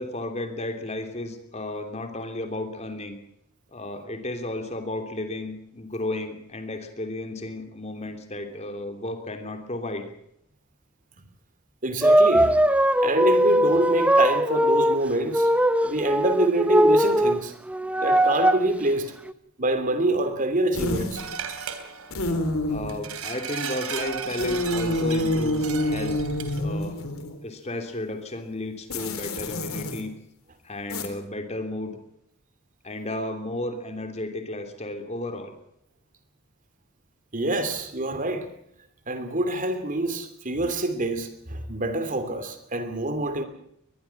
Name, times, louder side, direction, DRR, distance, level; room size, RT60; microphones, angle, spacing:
voice 1, 0.0-3.2 3.7-10.1 22.7-26.2 26.6-27.0 27.4-30.1 30.6-32.0 32.8-35.5, left 1 dB, 30° left, 3.0 m, -33 dB
voice 2, 11.8-12.6 13.0-15.5 15.8-17.5 18.0-19.1 19.6-21.2 37.3-38.5 39.1-43.4, right 2 dB, 35° right, 2.8 m, -26 dB
sound 1, 12.0-15.0 15.3-17.4 17.7-18.7 19.3-19.4, right 1 dB, 5° right, 0.8 m, -20 dB
sound 2, 20.7-21.3 22.1-23.1 24.4-27.4 28.9-30.0 30.9-31.1, left 1 dB, 70° left, 3.7 m, -27 dB
sound 3, 21.2-22.2 22.9-26.6, right 6 dB, 80° right, 3.3 m, -35 dB
23.0 x 21.0 x 5.9 m
head